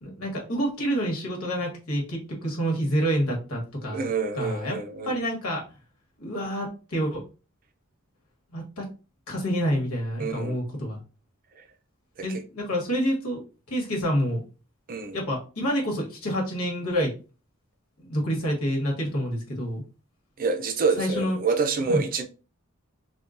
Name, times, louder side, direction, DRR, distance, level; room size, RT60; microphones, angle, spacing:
voice 1, 0.0-4.1 4.3-4.8 5.0-5.6 6.2-7.2 8.5-8.8 9.3-11.0 12.2-13.4 13.7-14.4 15.1-17.1 18.0-19.8 21.0-21.4 21.9-22.0, equal, 80° left, 1.3 m, -28 dB
voice 2, 3.9-5.2 10.2-10.6 11.6-11.7 14.9-15.2 20.4-22.2, right 4 dB, 40° right, 0.4 m, -27 dB
3.6 x 2.2 x 2.5 m
head